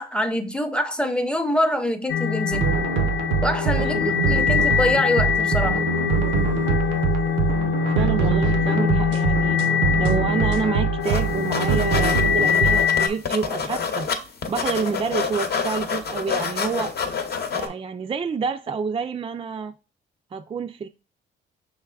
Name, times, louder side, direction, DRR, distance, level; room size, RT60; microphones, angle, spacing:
voice 1, 0.0-2.7 3.4-5.8, left 1 dB, 5° left, 0.7 m, -25 dB
sound 1, 2.1-13.1, left 8 dB, 70° left, 0.4 m, -23 dB
sound 2, 2.5-12.9, right 7 dB, 80° right, 0.5 m, -24 dB
voice 2, 3.8-4.3 8.0-9.6 10.0-14.1 14.5-16.9 17.5-19.7 20.3-20.9, right 5 dB, 25° right, 0.3 m, -28 dB
sound 3, 11.0-11.2 11.5-14.2 14.4-17.7, left 6 dB, 55° left, 0.8 m, -27 dB
5.6 x 3.5 x 2.3 m
cardioid pair, 90°, 20 cm